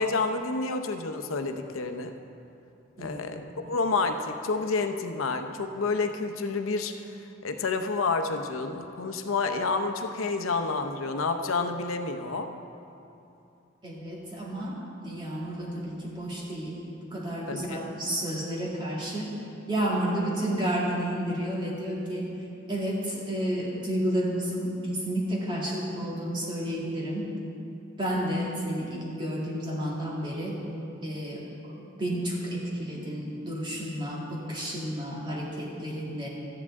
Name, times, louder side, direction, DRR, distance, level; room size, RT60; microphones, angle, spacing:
voice 1, 0.0-2.1 3.0-6.9 7.4-12.5 17.5-17.8, left 3 dB, 85° left, 7 dB, 0.7 m, -29 dB
voice 2, 13.8-19.3 19.7-22.3 22.7-27.3 28.0-30.6 31.0-36.3, right 1 dB, 25° right, -4 dB, 1.8 m, -31 dB
13.0 x 9.9 x 3.6 m, 2.7 s
head